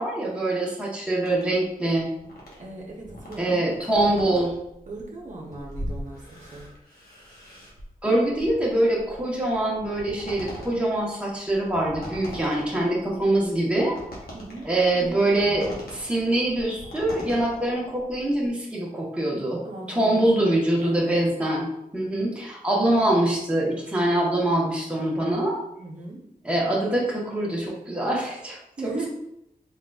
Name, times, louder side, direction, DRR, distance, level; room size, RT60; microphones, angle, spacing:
voice 1, 0.0-2.1 3.4-4.5 8.0-14.0 14.6-19.6 19.9-25.6 26.4-29.1, right 1 dB, 5° right, -4 dB, 1.0 m, -24 dB
sound 1, 1.3-18.5, equal, 90° left, 1.1 m, -41 dB
voice 2, 2.6-3.6 3.9-4.5 4.9-6.7 14.3-15.5 19.6-21.2 25.8-26.2 28.8-29.1, right 2 dB, 55° right, -2 dB, 0.8 m, -37 dB
4.1 x 3.8 x 2.3 m, 0.80 s
wide cardioid pair, 105°, 15 cm